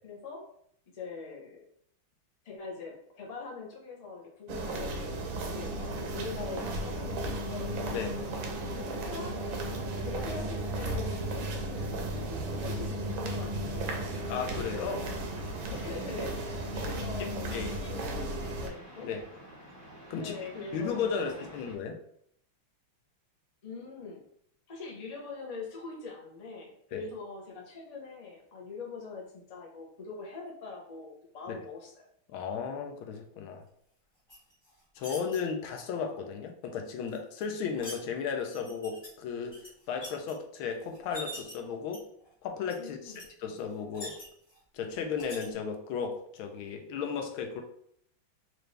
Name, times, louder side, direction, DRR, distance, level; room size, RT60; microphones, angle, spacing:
voice 1, 0.0-0.4 0.9-1.6 2.4-7.8 8.7-9.3 10.0-14.2 14.6-14.8 15.1-19.1 20.2-21.5 23.6-24.2 24.7-32.1 42.8-43.3, left 4 dB, 50° left, -2 dB, 0.4 m, -43 dB
sound 1, 4.5-18.7, right 1 dB, 75° right, 1.4 m, -35 dB
sound 2, 14.1-21.7, equal, 35° right, 0.4 m, -50 dB
voice 2, 14.3-15.1 17.2-17.8 19.0-19.2 20.1-20.3 20.7-22.0 26.9-27.0 31.5-31.6 32.3-33.6 35.0-42.0 42.4-43.1 43.4-44.1 44.7-47.6, left 6 dB, 80° left, 4 dB, 1.4 m, -35 dB
sound 3, 34.3-35.4 37.1-38.0 38.5-39.1 39.4-40.3 40.9-41.5 41.9-42.3 42.7-42.8 43.0-43.2 43.6-44.6 45.2-45.4, equal, 15° left, 0.9 m, -44 dB
4.5 x 2.6 x 3.2 m, 0.67 s
omnidirectional pair, 2.3 m